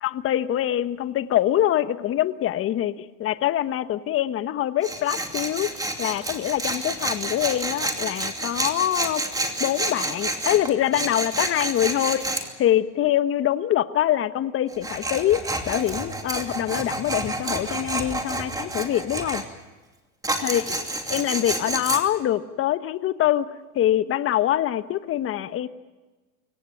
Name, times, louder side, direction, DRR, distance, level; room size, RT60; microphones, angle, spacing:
voice 1, 0.0-9.2 9.6-19.4 20.4-20.6 21.1-23.5 23.7-25.7, left 12 dB, 30° left, 13 dB, 1.2 m, -24 dB
Tools, 4.8-12.5 14.7-19.4 20.2-22.0, right 2 dB, 10° right, 2.6 m, -29 dB
24.0 x 18.0 x 9.0 m, 1.2 s
hypercardioid pair, 120°, 43 cm